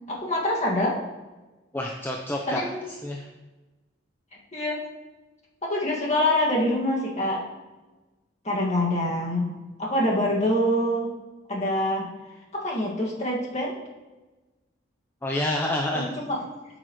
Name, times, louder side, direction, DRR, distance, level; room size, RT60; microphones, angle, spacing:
voice 1, 0.1-1.0 2.5-2.8 4.5-4.8 5.6-7.4 8.4-9.5 9.8-11.1 11.5-12.1 12.5-13.7 15.9-16.4, left 1 dB, 35° left, -3 dB, 1.9 m, -25 dB
voice 2, 1.7-2.7 3.0-3.3 15.2-16.1, left 1 dB, 10° left, 0 dB, 0.6 m, -28 dB
12.5 x 6.4 x 3.1 m, 1.2 s
head